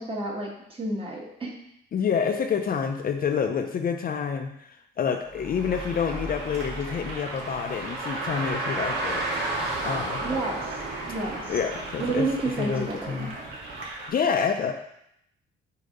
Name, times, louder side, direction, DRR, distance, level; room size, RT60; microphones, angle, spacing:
voice 1, 0.0-1.5 10.2-10.7 11.1-11.5 12.0-13.3, right 2 dB, 25° right, -2 dB, 1.7 m, -30 dB
voice 2, 1.9-9.2 9.8-10.4 11.5-12.3 12.6-13.4 14.1-14.7, left 6 dB, 45° left, 5 dB, 0.6 m, -28 dB
Car, 5.3-13.9, right 2 dB, 60° right, 1.8 m, -33 dB
sound 1, 5.7-14.1, right 2 dB, 85° right, 1.6 m, -41 dB
6.6 x 2.8 x 5.2 m, 0.75 s
cardioid pair, 90°, 20 cm